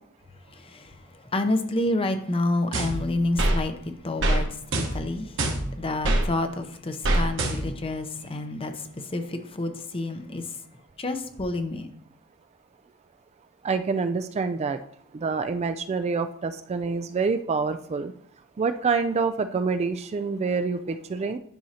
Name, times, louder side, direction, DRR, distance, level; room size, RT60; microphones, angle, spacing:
voice 1, 0.5-1.0 1.3-5.5 5.8-10.6 11.0-11.9, left 2 dB, 25° left, 0.7 m, -29 dB
sound 1, 2.7-3.6 4.2-4.4 4.7-6.2 7.0-7.9, right 1 dB, 65° right, 1.2 m, -24 dB
voice 2, 13.6-14.8 15.1-18.1 18.6-21.4, right 4 dB, 30° right, 0.3 m, -26 dB
10.5 x 6.2 x 2.8 m
head